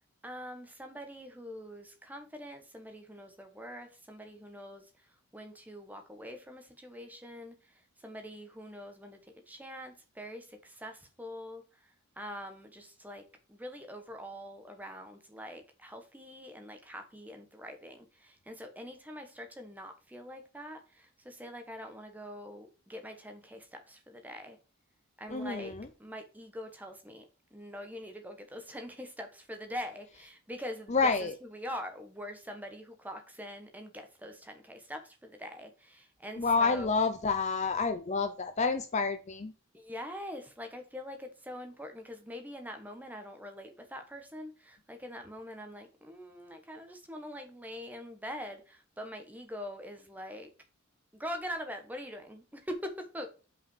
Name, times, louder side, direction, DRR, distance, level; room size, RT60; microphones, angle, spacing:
voice 1, 0.2-9.2 9.5-24.6 25.2-25.7 26.0-36.9 39.7-50.5 51.1-53.3, equal, 5° right, 1.1 m, -44 dB
voice 2, 25.3-25.9 30.9-31.4 36.4-39.5, left 4 dB, 30° left, 0.5 m, -29 dB
5.6 x 5.0 x 4.7 m
head